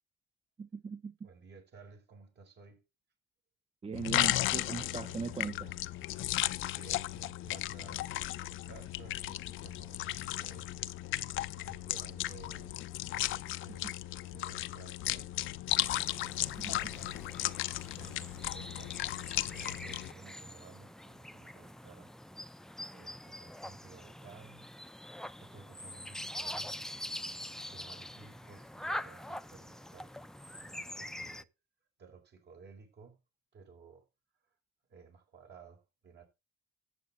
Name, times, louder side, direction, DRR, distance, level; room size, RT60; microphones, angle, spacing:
voice 1, 0.6-1.3 3.8-5.8 13.8-13.9 16.6-16.7, right 5 dB, 30° right, 0.9 m, -39 dB
voice 2, 1.2-2.8 6.7-8.1 8.4-10.7 11.4-12.8 13.3-15.3 16.2-19.0 19.4-22.1 22.9-24.7 25.4-27.0 27.4-30.2 30.5-31.5 32.0-33.2 33.5-34.1 34.9-36.2, right 5 dB, 60° right, 5.0 m, -56 dB
sound 1, 3.9-20.1, left 15 dB, 80° left, 0.6 m, -35 dB
sound 2, 15.7-31.4, left 1 dB, 5° left, 0.6 m, -44 dB
12.5 x 8.2 x 4.3 m
cardioid pair, 90°, 20 cm